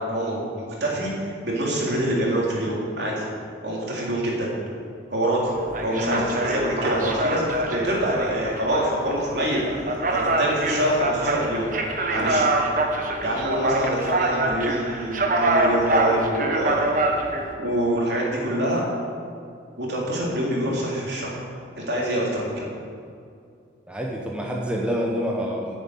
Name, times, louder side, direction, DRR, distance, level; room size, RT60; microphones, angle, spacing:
voice 1, 0.0-3.3 3.6-4.5 5.1-5.5 5.8-11.7 12.1-12.5 13.2-16.9 17.6-18.9 19.8-21.3 21.8-22.7, right 1 dB, 70° right, -4 dB, 3.4 m, -25 dB
sound 1, 5.5-17.5, right 2 dB, 45° right, 1.3 m, -25 dB
voice 2, 5.9-6.2 12.2-12.5 23.9-25.7, equal, 5° right, -1 dB, 1.1 m, -28 dB
10.0 x 7.5 x 9.2 m, 2.4 s
head